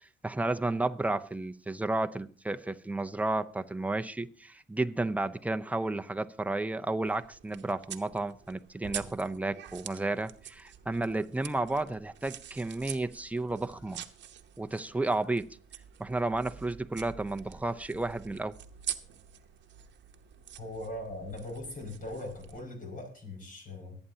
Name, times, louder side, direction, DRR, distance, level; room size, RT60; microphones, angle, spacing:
voice 1, 0.0-14.0 14.6-15.5 16.0-18.5, right 2 dB, 5° right, 0.7 m, -32 dB
sound 1, 7.0-22.6, right 9 dB, 65° right, 0.9 m, -46 dB
voice 2, 20.6-24.0, left 1 dB, 45° left, 5.7 m, -40 dB
23.5 x 9.0 x 2.8 m
cardioid pair, 90°, 20 cm